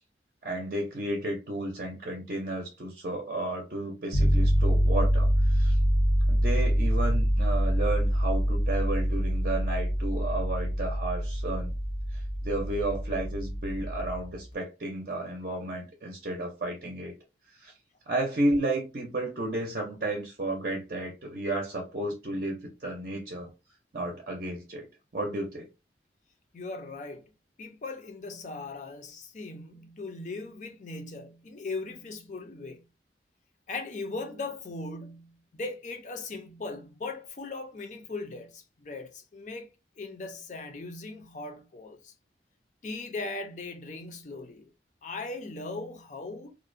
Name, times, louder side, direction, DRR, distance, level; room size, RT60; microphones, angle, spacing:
voice 1, 0.4-5.8 6.3-11.7 12.1-17.1 17.6-17.7 18.1-23.5 23.9-24.9 25.1-25.7, right 2 dB, 50° right, 0.6 m, -32 dB
sound 1, 4.1-14.3, equal, 75° left, 0.8 m, -25 dB
voice 2, 26.5-27.3 27.6-32.9 33.7-39.7 40.0-42.1 42.8-44.7 45.0-46.5, left 3 dB, 40° left, 0.5 m, -39 dB
2.5 x 2.1 x 2.5 m
head